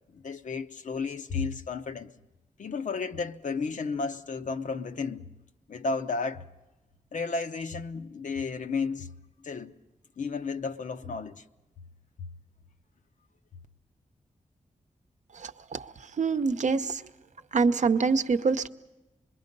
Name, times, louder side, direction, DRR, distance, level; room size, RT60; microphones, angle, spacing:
voice 1, 0.1-2.1 2.6-5.3 5.7-6.4 7.1-9.1 9.4-9.7 10.2-11.4 12.2-12.3, left 4 dB, 70° left, 0.8 m, -33 dB
voice 2, 15.4-15.9 16.2-17.0 17.5-18.7, right 4 dB, 65° right, 0.7 m, -25 dB
26.0 x 22.0 x 5.3 m
wide cardioid pair, 115°, 13 cm